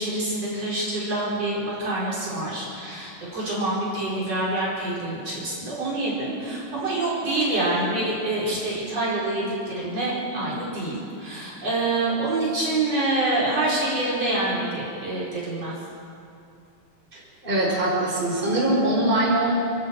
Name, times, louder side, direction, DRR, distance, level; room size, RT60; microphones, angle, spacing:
voice 1, 0.0-15.7, right 2 dB, 50° right, -6 dB, 5.6 m, -26 dB
voice 2, 17.1-19.5, right 1 dB, 15° right, -4 dB, 5.3 m, -23 dB
29.5 x 12.5 x 8.3 m, 2.5 s
omnidirectional pair, 3.7 m